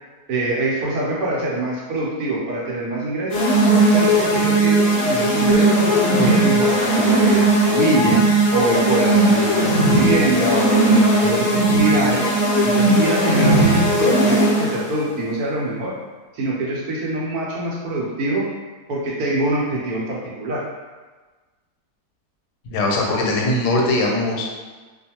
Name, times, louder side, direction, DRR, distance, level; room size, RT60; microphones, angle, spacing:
voice 1, 0.3-3.4 3.9-5.8 6.2-8.2 8.5-12.3 12.6-15.9 16.3-18.5 18.9-20.6, right 2 dB, 75° right, -4 dB, 1.1 m, -24 dB
sound 1, 3.3-14.9, right 1 dB, 60° left, 0.8 m, -17 dB
voice 2, 22.7-24.6, left 2 dB, 85° left, -1 dB, 1.2 m, -21 dB
2.5 x 2.3 x 2.7 m, 1.3 s
omnidirectional pair, 1.7 m